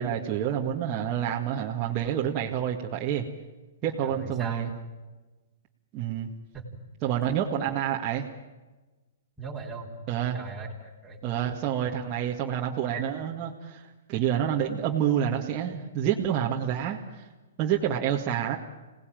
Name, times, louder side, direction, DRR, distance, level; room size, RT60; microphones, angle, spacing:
voice 1, 0.0-3.2 3.8-4.7 5.9-6.3 7.0-8.3 10.1-10.4 11.2-17.3 17.6-18.6, right 9 dB, 30° right, -2 dB, 1.9 m, -28 dB
voice 2, 4.0-4.8 6.5-6.7 9.4-9.9 10.3-11.2, right 3 dB, 5° right, -6 dB, 4.0 m, -39 dB
26.5 x 18.5 x 9.2 m, 1.2 s
hypercardioid pair, 150°, 0 cm